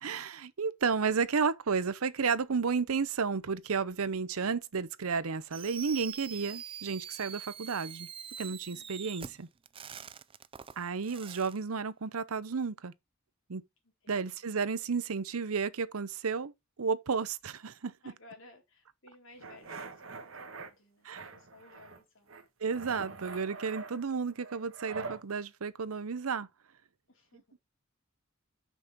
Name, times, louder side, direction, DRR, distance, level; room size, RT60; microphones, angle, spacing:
voice 1, 0.0-8.1 8.4-9.5 10.8-12.9 13.5-13.6 14.1-16.5 16.8-17.9 21.1-21.2 22.6-26.5 27.5-27.6, right 5 dB, 90° right, 0.7 m, -32 dB
Fireworks, 5.5-11.6, right 8 dB, 25° right, 0.4 m, -44 dB
voice 2, 8.7-9.1 13.8-14.4 17.2-17.3 18.0-22.4 23.2-23.6 27.1-27.4, left 2 dB, 65° left, 3.6 m, -58 dB
sound 1, 19.4-20.7 21.1-22.0 22.3-25.2, right 4 dB, 70° right, 1.4 m, -44 dB
6.2 x 6.1 x 5.1 m
head